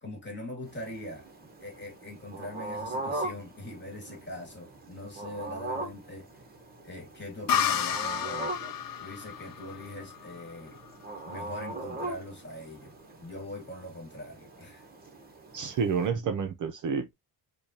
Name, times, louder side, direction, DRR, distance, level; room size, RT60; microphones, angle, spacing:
voice 1, 0.0-1.3 1.6-6.3 6.8-8.5 9.0-10.8 11.2-12.9 13.2-14.9, left 1 dB, 25° left, 1.7 m, -42 dB
sound 1, 0.7-16.1, right 2 dB, 20° right, 0.9 m, -41 dB
sound 2, 7.5-11.0, left 9 dB, 55° left, 0.5 m, -31 dB
voice 2, 15.5-17.1, right 6 dB, 45° right, 0.6 m, -29 dB
4.9 x 2.3 x 2.7 m
cardioid pair, 140°, 43 cm